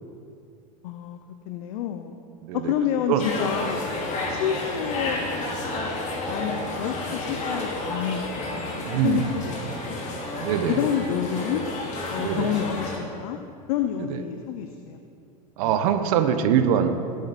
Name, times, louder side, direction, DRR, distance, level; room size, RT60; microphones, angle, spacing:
voice 1, 0.8-1.2 1.5-2.1 2.5-3.9 4.3-6.0 6.3-8.4 9.0-9.6 9.8-10.0 10.4-11.6 12.1-13.4 13.7-15.0 15.6-15.7, left 9 dB, 70° left, 7 dB, 0.8 m, -29 dB
voice 2, 2.4-2.7 3.1-3.3 8.8-9.3 10.3-10.8 12.2-12.5 14.1-14.2 15.6-16.9, right 9 dB, 70° right, 8 dB, 1.1 m, -23 dB
sound 1, 3.2-13.0, left 2 dB, 40° left, 2.5 m, -31 dB
19.5 x 8.6 x 4.3 m, 2.5 s
supercardioid pair, 110°, 19 cm